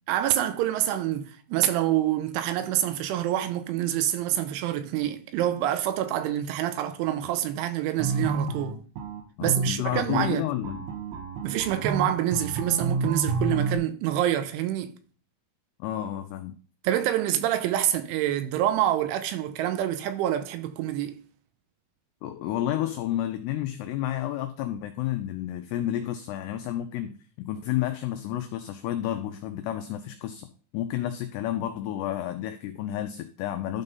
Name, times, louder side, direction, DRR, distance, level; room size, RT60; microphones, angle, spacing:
voice 1, 0.1-8.8 9.4-10.5 11.4-14.9 16.8-21.2, right 12 dB, 90° right, 3.2 m, -26 dB
sound 1, 8.0-13.8, right 3 dB, 70° right, 2.4 m, -29 dB
voice 2, 9.4-10.9 15.8-16.5 22.2-30.5 30.7-33.8, left 12 dB, 90° left, 2.4 m, -31 dB
11.5 x 4.0 x 5.3 m
omnidirectional pair, 5.5 m